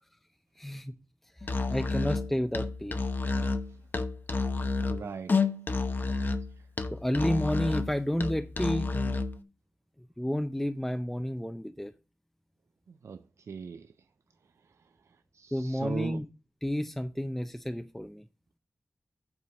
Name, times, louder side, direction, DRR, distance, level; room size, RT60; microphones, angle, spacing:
voice 1, 0.6-0.9 1.7-2.9 6.9-9.2 10.2-11.9 15.5-16.3 16.6-18.2, equal, 5° left, 0.6 m, -31 dB
Musical instrument, 1.4-9.4, left 3 dB, 45° left, 0.9 m, -30 dB
voice 2, 4.9-5.3 6.1-6.3 13.0-13.9 15.3-16.2, right 6 dB, 85° right, 0.4 m, -39 dB
8.7 x 4.6 x 6.2 m
wide cardioid pair, 115°, 5 cm